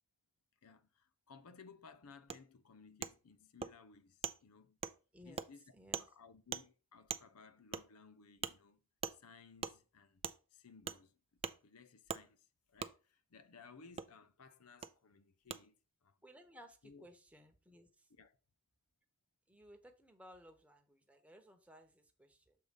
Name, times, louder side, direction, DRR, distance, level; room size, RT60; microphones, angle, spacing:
voice 1, 0.6-4.8 5.2-5.6 6.0-8.8 9.1-10.2 10.5-11.2 11.5-15.8 16.0-16.2 16.8-17.1 18.2-18.4, left 5 dB, 90° left, 0.7 m, -60 dB
Wood, 2.3-2.4 3.0-3.1 3.6-3.7 4.2-4.3 4.8-4.9 5.4-5.5 5.9-6.1 6.5-6.6 7.1-7.2 7.7-7.8 8.4-8.5 9.0-9.2 9.6-9.7 10.2-10.4 10.9-11.0 11.4-11.5 12.1-12.2 12.8-12.9 14.0-14.1 14.8-14.9 15.5-15.6, right 6 dB, 25° right, 0.4 m, -40 dB
voice 2, 5.1-5.4 5.7-6.1 16.2-18.1 19.5-22.6, equal, 5° right, 1.0 m, -59 dB
6.6 x 4.0 x 5.1 m
head